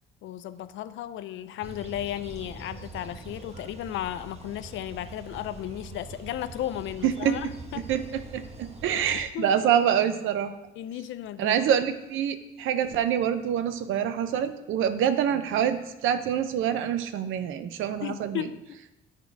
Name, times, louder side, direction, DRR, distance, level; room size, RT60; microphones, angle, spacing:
voice 1, 0.2-7.9 8.9-9.7 10.8-11.6 18.0-18.8, left 12 dB, 75° left, 14 dB, 0.4 m, -35 dB
sound 1, 1.6-9.2, right 3 dB, 30° right, 1.0 m, -44 dB
voice 2, 7.0-7.3 7.9-8.0 8.3-10.5 11.4-18.5, right 9 dB, 85° right, 10 dB, 0.6 m, -26 dB
8.3 x 3.7 x 4.6 m, 0.93 s
cardioid pair, 90°, 20 cm